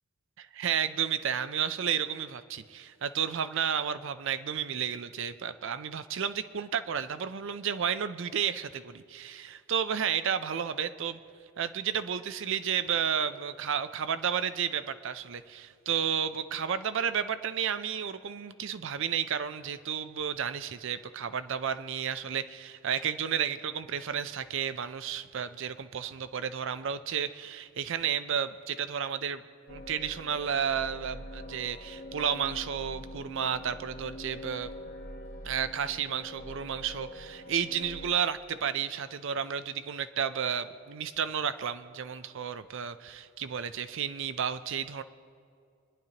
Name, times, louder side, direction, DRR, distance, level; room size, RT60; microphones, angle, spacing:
voice 1, 0.4-11.2 11.6-29.4 29.7-34.7 35.4-45.0, right 8 dB, 65° right, 12 dB, 0.5 m, -32 dB
sound 1, 29.7-38.2, left 1 dB, 45° left, 0.9 m, -44 dB
23.0 x 11.0 x 2.9 m, 2.3 s
head